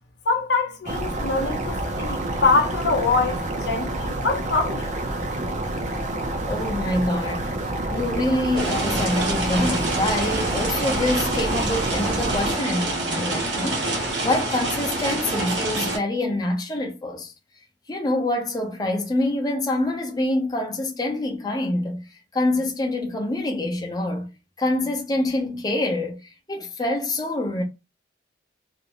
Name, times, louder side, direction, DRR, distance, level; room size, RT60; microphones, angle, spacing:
voice 1, 0.3-4.9, left 4 dB, 70° left, 0.6 m, -24 dB
sound 1, 0.8-12.5, right 1 dB, 40° right, 0.5 m, -28 dB
voice 2, 6.5-7.6 7.9-17.3 17.9-22.0 22.3-24.3 24.6-27.6, left 1 dB, 20° left, 0.6 m, -26 dB
sound 2, 8.5-16.0, right 2 dB, 80° right, 1.0 m, -27 dB
2.5 x 2.1 x 2.9 m
head